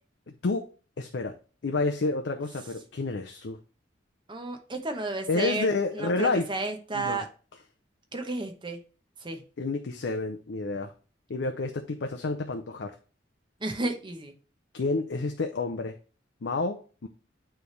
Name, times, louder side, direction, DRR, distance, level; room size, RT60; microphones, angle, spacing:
voice 1, 0.3-0.7 1.0-1.4 1.6-3.6 5.3-6.5 6.9-7.2 9.6-10.9 11.3-12.9 14.7-16.0 16.4-17.1, left 3 dB, 65° left, 4 dB, 0.6 m, -29 dB
voice 2, 4.3-5.7 5.9-7.3 8.1-8.8 9.2-9.4 13.6-14.3, right 2 dB, 25° right, 5 dB, 0.9 m, -32 dB
9.2 x 3.4 x 3.2 m, 0.36 s
head